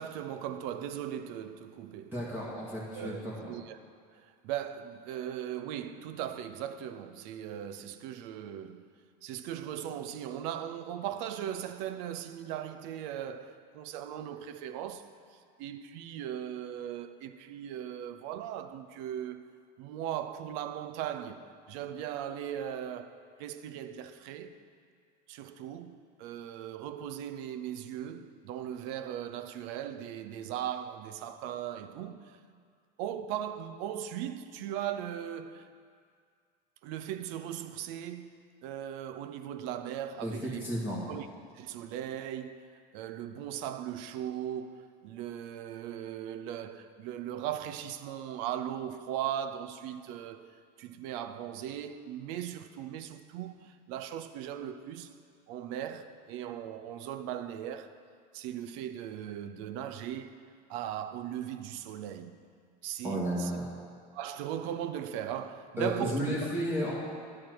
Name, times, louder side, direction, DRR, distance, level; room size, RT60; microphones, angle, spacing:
voice 1, 0.0-2.1 2.9-3.2 3.5-3.8 4.1-8.8 9.2-15.1 15.6-19.5 19.8-24.6 25.3-32.4 33.0-35.7 36.8-40.7 41.1-41.3 41.5-50.5 50.8-55.1 55.5-58.0 58.3-62.4 62.8-63.5 64.1-66.3, right 10 dB, 65° right, 0.6 m, -38 dB
voice 2, 2.1-3.5 40.2-40.3 40.6-41.0 63.0-63.7 65.8-66.9, equal, 10° right, 1.8 m, -33 dB
10.5 x 4.3 x 7.8 m
supercardioid pair, 115°, 21 cm